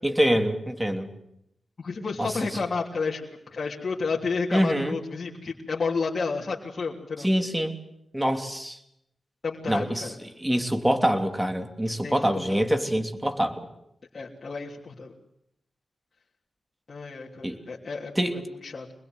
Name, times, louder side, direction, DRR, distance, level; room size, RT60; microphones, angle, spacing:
voice 1, 0.0-1.1 2.2-2.3 4.5-5.0 7.2-7.8 8.1-8.8 9.6-13.7 17.4-17.6 18.1-18.4, equal, 10° right, 6 dB, 3.2 m, -25 dB
voice 2, 1.8-3.2 3.5-7.3 9.4-10.2 12.0-12.6 14.1-15.1 16.9-18.9, left 4 dB, 50° left, -4 dB, 3.2 m, -31 dB
25.5 x 21.5 x 8.0 m, 0.80 s
cardioid pair, 65°, 0 cm